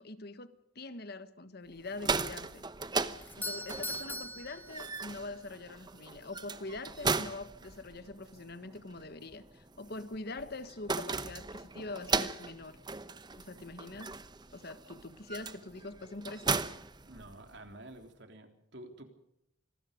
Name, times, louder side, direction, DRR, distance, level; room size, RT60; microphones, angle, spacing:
voice 1, 0.0-2.6 3.4-12.8 13.4-14.1 14.5-16.6, left 2 dB, 50° left, 12 dB, 1.4 m, -44 dB
sound 1, 1.8-17.7, right 4 dB, 20° right, 0.9 m, -38 dB
Doorbell, 3.2-5.4, left 1 dB, 10° left, 0.9 m, -41 dB
voice 2, 17.0-19.1, right 1 dB, 60° right, 6 dB, 3.5 m, -50 dB
26.5 x 20.5 x 5.2 m, 0.84 s
head